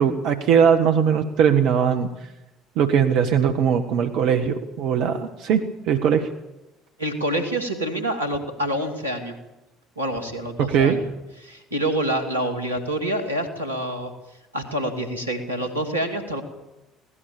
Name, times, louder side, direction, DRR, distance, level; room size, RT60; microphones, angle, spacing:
voice 1, 0.0-2.1 2.8-6.3 10.6-11.0, right 7 dB, 60° right, 6 dB, 1.4 m, -20 dB
voice 2, 7.0-9.3 10.0-11.0 11.4-14.1 14.5-16.4, right 1 dB, 90° right, 5 dB, 2.5 m, -27 dB
24.0 x 18.0 x 7.1 m, 0.97 s
figure-of-eight pair, 55°, 0 cm